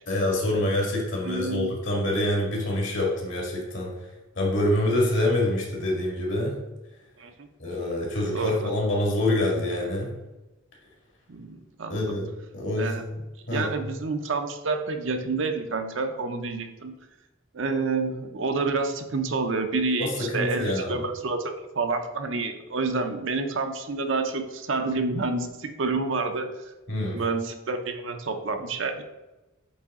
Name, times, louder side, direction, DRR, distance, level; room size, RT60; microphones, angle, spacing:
voice 1, 0.1-3.9 4.4-6.6 7.6-10.1 11.9-12.3 12.5-13.1 13.5-13.7 20.0-21.0 26.9-27.2, left 1 dB, 65° left, -1 dB, 2.0 m, -26 dB
voice 2, 1.2-1.7 7.2-7.3 8.3-8.7 11.3-12.1 12.7-13.0 13.5-17.0 17.5-21.4 21.7-26.5 27.1-29.0, right 3 dB, 65° right, 6 dB, 0.7 m, -28 dB
8.2 x 3.8 x 3.7 m, 1.0 s
head